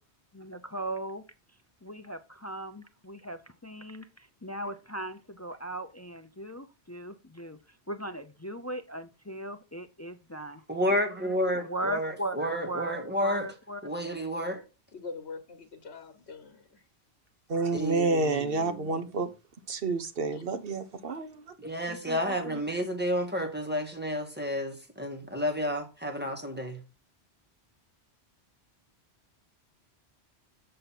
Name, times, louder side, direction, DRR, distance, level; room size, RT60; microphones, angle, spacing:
voice 1, 0.3-1.2 1.8-7.6 7.9-10.6 11.5-13.8 18.1-18.4 21.9-22.6, right 1 dB, 20° left, 0.4 m, -38 dB
voice 2, 10.7-13.5 13.8-14.6 17.7-18.9 21.6-26.8, equal, 10° right, 1.8 m, -31 dB
voice 3, 14.9-16.9 20.3-20.4, left 4 dB, 75° left, 1.4 m, -43 dB
voice 4, 17.5-19.3 19.7-21.3, right 3 dB, 60° right, 1.2 m, -29 dB
7.8 x 6.7 x 4.2 m
omnidirectional pair, 1.1 m